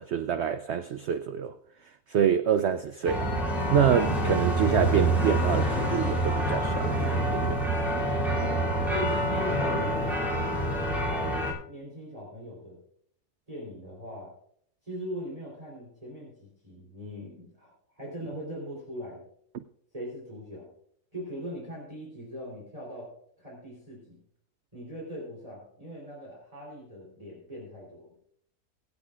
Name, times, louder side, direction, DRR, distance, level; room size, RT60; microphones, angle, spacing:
voice 1, 0.0-1.5 2.1-3.3 3.7-7.7 19.5-19.6, right 8 dB, 90° right, 0.5 m, -26 dB
sound 1, 3.1-11.5, right 1 dB, ahead, 2.7 m, -27 dB
sound 2, 5.5-10.4, left 2 dB, 80° left, 2.5 m, -37 dB
voice 2, 8.3-10.3 11.1-12.8 13.5-14.3 14.8-19.2 19.9-20.7 21.1-24.2 24.7-28.1, equal, 20° right, 3.5 m, -40 dB
22.0 x 8.4 x 2.4 m
omnidirectional pair, 1.7 m